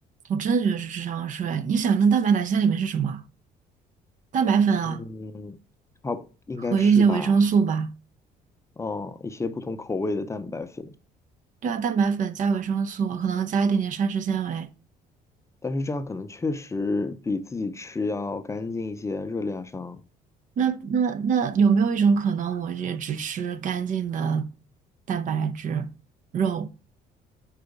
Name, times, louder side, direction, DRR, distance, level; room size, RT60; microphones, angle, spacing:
voice 1, 0.3-3.2 4.3-5.0 6.7-7.9 11.6-14.7 20.6-24.5 25.1-25.9 26.3-26.7, right 6 dB, 50° right, 0.5 m, -23 dB
voice 2, 4.8-5.6 6.0-7.3 8.8-10.9 15.6-20.0, left 3 dB, 15° left, 0.6 m, -31 dB
4.8 x 4.3 x 5.1 m
cardioid pair, 110°, 17 cm